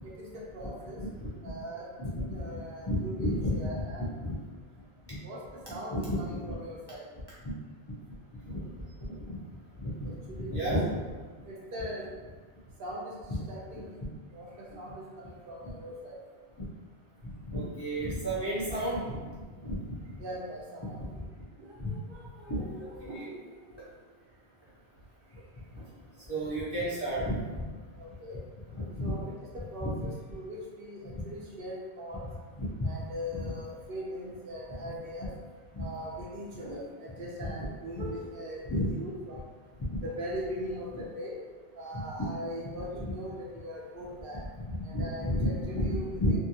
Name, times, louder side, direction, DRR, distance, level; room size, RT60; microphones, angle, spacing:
voice 1, 0.0-1.0 1.4-1.9 2.3-4.5 5.2-7.1 10.0-10.7 11.5-12.1 12.8-14.0 14.3-16.2 20.2-21.0 21.6-23.8 25.8-25.9 26.9-27.1 28.0-28.4 29.0-32.2 32.8-35.3 35.8-38.6 38.9-39.4 40.0-41.4 41.7-44.4 44.8-46.4, equal, 60° right, -3 dB, 0.7 m, -41 dB
voice 2, 2.5-3.7 4.0-4.3 5.9-6.5 8.5-8.6 9.3-9.4 9.8-10.1 10.4-10.8 17.5-19.2 19.6-19.8 21.2-21.3 21.8-21.9 22.5-22.6 23.1-23.2 26.3-27.6 29.0-29.1 29.8-30.1 32.6-32.9 33.3-33.4 35.7-35.9 37.4-37.5 38.0-38.1 38.7-38.9 42.2-42.3 42.9-43.1 44.7-46.4, equal, 35° left, -10 dB, 0.5 m, -31 dB
2.7 x 2.4 x 2.7 m, 1.5 s
omnidirectional pair, 1.1 m